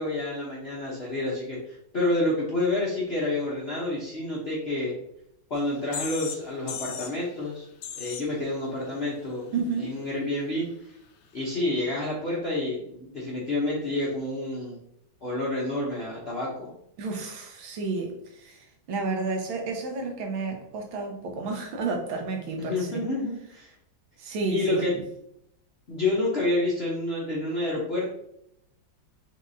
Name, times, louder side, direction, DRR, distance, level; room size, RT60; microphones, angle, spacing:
voice 1, 0.0-4.9 5.5-7.7 7.9-9.5 9.8-10.7 11.3-14.8 15.2-16.7 22.6-23.7 24.5-24.9 25.9-28.1, left 2 dB, 55° left, -5 dB, 0.7 m, -29 dB
sound 1, 5.6-5.7 5.9-6.4 6.7-7.2 7.8-8.3, left 7 dB, 70° left, 1.0 m, -35 dB
voice 2, 9.5-9.9 17.0-22.9 24.2-24.8, right 3 dB, 80° right, 3 dB, 1.6 m, -31 dB
4.7 x 3.7 x 2.6 m, 0.76 s
omnidirectional pair, 2.2 m